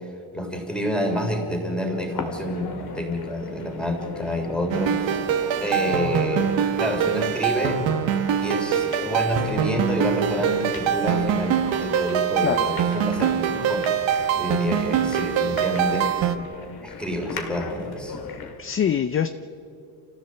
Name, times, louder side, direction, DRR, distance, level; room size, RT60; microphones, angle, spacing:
voice 1, 0.3-5.3 5.6-7.8 8.4-16.1 16.8-18.2, equal, ahead, 2 dB, 3.3 m, -28 dB
sound 1, 2.1-18.6, left 5 dB, 50° left, 2.3 m, -39 dB
sound 2, 4.7-16.4, right 8 dB, 65° right, 1.5 m, -24 dB
voice 2, 18.3-19.3, left 8 dB, 30° left, 11 dB, 0.5 m, -25 dB
28.0 x 15.0 x 7.7 m, 2.6 s
cardioid pair, 150°, 48 cm